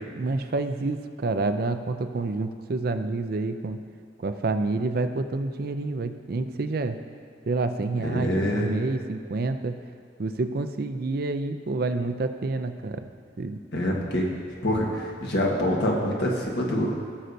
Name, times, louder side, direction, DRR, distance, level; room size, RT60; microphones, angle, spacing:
voice 1, 0.2-3.8 4.2-7.0 7.5-9.8 10.2-13.0 13.4-13.6, right 3 dB, 55° right, 8 dB, 0.5 m, -28 dB
voice 2, 8.0-8.7 13.7-14.2 14.6-16.9, equal, 65° left, -2 dB, 1.4 m, -25 dB
17.0 x 6.5 x 2.7 m, 2.2 s
head